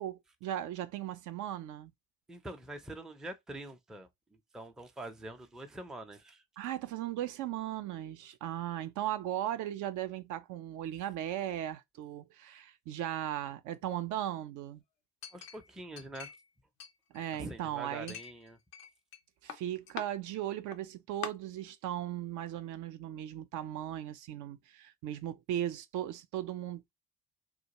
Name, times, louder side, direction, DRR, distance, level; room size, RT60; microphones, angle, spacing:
voice 1, 0.0-1.9 6.6-14.8 17.1-18.2 19.4-26.9, right 12 dB, 55° right, 0.5 m, -37 dB
voice 2, 2.3-6.4 15.3-16.3 17.3-18.6, right 1 dB, ahead, 0.4 m, -45 dB
Chink clink, 15.2-16.5 16.8-17.6 18.1-19.2 19.5-20.1 20.7-20.8 21.2-21.3, left 8 dB, 80° left, 0.6 m, -44 dB
2.2 x 2.0 x 2.8 m
hypercardioid pair, 55°, 38 cm